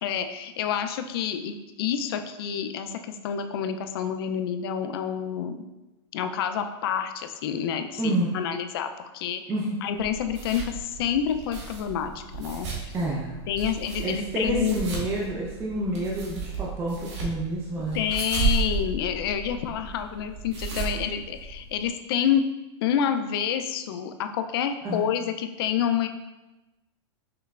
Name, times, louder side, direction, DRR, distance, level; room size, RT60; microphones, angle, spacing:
voice 1, 0.0-5.7 6.1-9.4 9.8-12.9 13.5-14.8 17.9-22.5 22.8-26.1, left 8 dB, 55° left, 8 dB, 0.4 m, -28 dB
voice 2, 8.0-8.4 9.5-9.8 12.9-13.4 14.0-18.0 24.8-25.0, right 1 dB, 15° right, -4 dB, 0.5 m, -28 dB
sound 1, 10.0-21.9, right 4 dB, 90° right, 1.4 m, -34 dB
5.8 x 3.1 x 2.3 m, 1.1 s
supercardioid pair, 165°, 15 cm